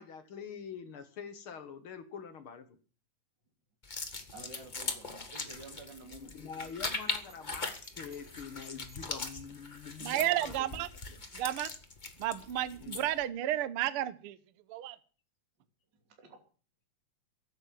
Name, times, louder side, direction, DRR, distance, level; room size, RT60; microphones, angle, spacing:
voice 1, 0.0-2.8 6.1-11.2 12.8-13.0, left 6 dB, 50° left, 9 dB, 1.8 m, -45 dB
sound 1, 3.8-13.2, left 3 dB, 80° left, 0.4 m, -40 dB
voice 2, 4.3-6.4 16.2-16.4, right 3 dB, 35° right, 3 dB, 3.2 m, -50 dB
Bell, 6.5-9.5, right 2 dB, 65° right, 5.3 m, -61 dB
voice 3, 10.0-10.9 11.3-11.7 12.2-14.4 14.7-15.0, right 13 dB, 85° right, 15 dB, 1.2 m, -32 dB
16.5 x 9.1 x 7.5 m, 0.39 s
omnidirectional pair, 4.0 m